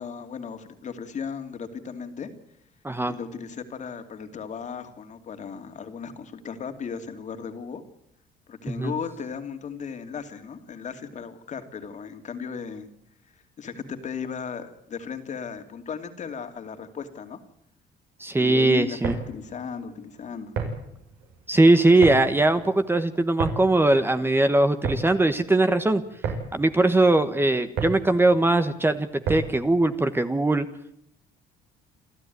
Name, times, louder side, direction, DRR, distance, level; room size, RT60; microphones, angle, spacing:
voice 1, 0.0-2.3 3.1-7.8 8.5-12.9 13.6-17.4 18.3-20.5, left 6 dB, 45° left, 7 dB, 2.7 m, -36 dB
voice 2, 18.2-19.1 21.5-26.0 26.5-30.7, right 2 dB, 15° right, 9 dB, 1.3 m, -20 dB
sound 1, 18.9-29.7, right 5 dB, 80° right, 6.7 m, -34 dB
27.5 x 13.5 x 9.4 m, 0.75 s
cardioid pair, 110°, 17 cm